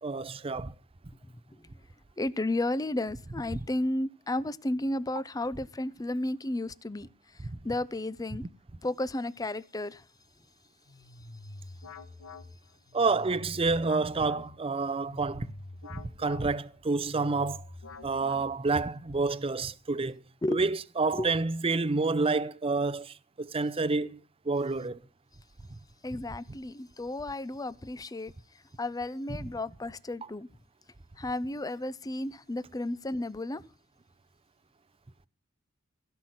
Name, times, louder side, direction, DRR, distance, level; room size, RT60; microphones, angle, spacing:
voice 1, 0.0-0.7 3.5-3.6 7.4-7.6 12.9-15.5 15.9-17.7 18.0-20.2 20.5-24.2 24.4-25.0, right 3 dB, 30° right, 0.6 m, -29 dB
voice 2, 2.2-8.4 8.8-10.0 20.4-20.6 21.1-21.3 26.0-28.3 28.8-30.5 31.2-33.6, left 1 dB, 20° left, 0.5 m, -33 dB
sound 1, 10.9-18.9, left 2 dB, 85° left, 1.3 m, -47 dB
16.5 x 5.8 x 7.8 m
head